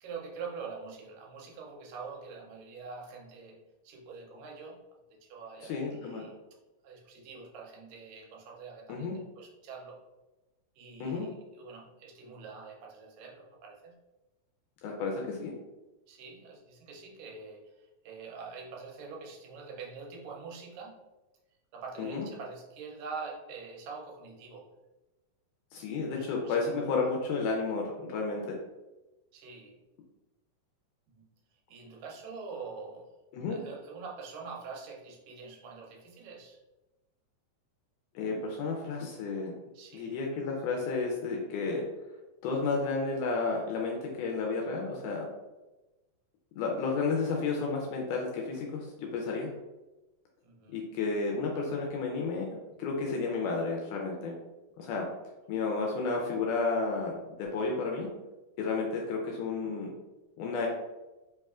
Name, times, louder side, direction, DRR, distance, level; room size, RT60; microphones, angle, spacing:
voice 1, 0.0-4.8 5.1-6.3 6.8-10.0 10.8-14.0 16.1-21.0 21.7-24.7 26.0-27.1 29.3-29.8 31.1-31.3 31.7-33.1 33.5-36.6 39.7-40.2 50.4-50.8, right 5 dB, 80° right, -1 dB, 2.2 m, -45 dB
voice 2, 5.6-6.3 8.9-9.2 11.0-11.3 14.8-15.5 22.0-22.3 25.7-28.6 33.3-33.6 38.2-39.5 39.9-41.9 42.4-45.3 46.6-49.5 50.7-52.5 52.8-54.4 54.8-55.1 55.5-58.1 58.6-59.9 60.4-60.7, left 4 dB, 80° left, 0 dB, 1.9 m, -32 dB
5.4 x 2.9 x 2.4 m, 1.1 s
omnidirectional pair, 4.0 m